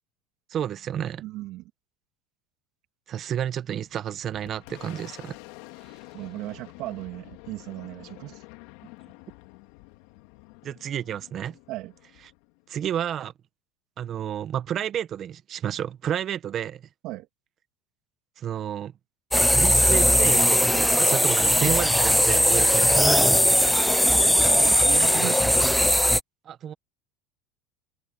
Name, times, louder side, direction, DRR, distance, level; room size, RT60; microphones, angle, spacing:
voice 1, 0.5-1.2 3.1-5.4 10.6-11.6 12.7-13.3 14.0-16.8 18.4-18.9 19.5-23.2 26.4-26.7, right 10 dB, 35° right, 1.1 m, -31 dB
voice 2, 1.2-1.6 6.1-8.4 11.7-11.9 17.0-17.3 24.3-26.0, right 17 dB, 55° right, 2.8 m, -36 dB
Boom, 3.8-13.2, left 23 dB, 70° left, 3.4 m, -48 dB
sound 1, 19.3-26.2, equal, ahead, 0.4 m, -19 dB
supercardioid pair, 135°, 0 cm